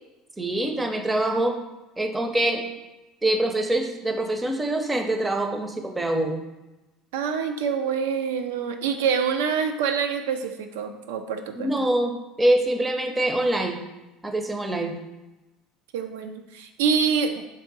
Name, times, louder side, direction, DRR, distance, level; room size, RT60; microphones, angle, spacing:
voice 1, 0.4-1.6 2.0-2.6 3.2-6.4 11.5-13.8 14.2-15.0, right 1 dB, 15° right, 4 dB, 0.6 m, -24 dB
voice 2, 7.1-11.7 15.9-17.3, right 6 dB, 85° right, 6 dB, 0.4 m, -26 dB
3.5 x 2.7 x 4.0 m, 1.0 s
hypercardioid pair, 85°, 0 cm